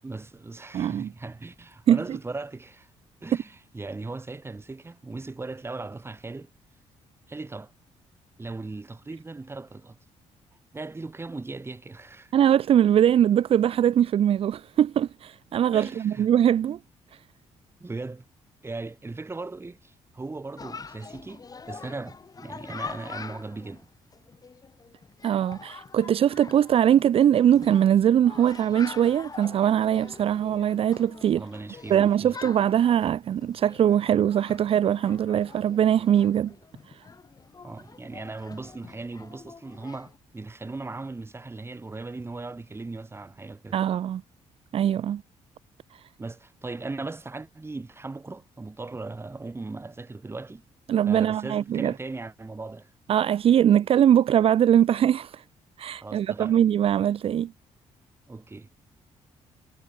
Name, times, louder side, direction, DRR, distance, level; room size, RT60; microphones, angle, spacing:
voice 1, 0.0-2.9 3.2-6.5 7.3-7.7 8.4-10.0 10.7-12.3 15.7-16.3 17.8-18.2 18.6-23.9 31.3-32.4 37.6-43.8 46.2-50.6 51.1-52.9 56.0-56.6 58.3-58.7, right 3 dB, 20° right, 7.7 m, -38 dB
voice 2, 0.7-1.1 1.9-2.2 12.3-16.8 25.2-31.4 31.9-36.5 36.9-37.0 43.7-44.2 44.7-45.2 45.9-46.0 50.9-51.9 53.1-55.4 55.8-57.5, right 10 dB, 55° right, 0.5 m, -22 dB
Chatter, 20.6-40.2, left 5 dB, 30° left, 2.6 m, -44 dB
cardioid pair, 100°, 12 cm